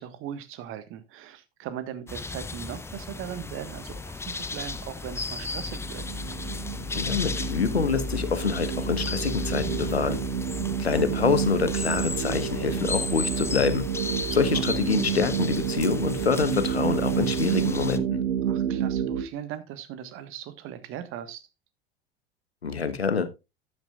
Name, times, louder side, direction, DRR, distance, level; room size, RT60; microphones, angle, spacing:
voice 1, 0.0-6.0 14.3-14.7 18.4-21.5, right 10 dB, 45° right, 13 dB, 1.4 m, -39 dB
sound 1, 2.1-18.0, left 3 dB, 10° left, 0.7 m, -34 dB
sound 2, 5.4-19.2, right 9 dB, 70° right, 1.2 m, -30 dB
voice 2, 6.9-10.2 10.8-13.8 14.3-18.2 22.6-23.3, left 5 dB, 85° left, 12 dB, 1.1 m, -26 dB
12.5 x 9.2 x 2.4 m, 0.25 s
figure-of-eight pair, 75°, 31 cm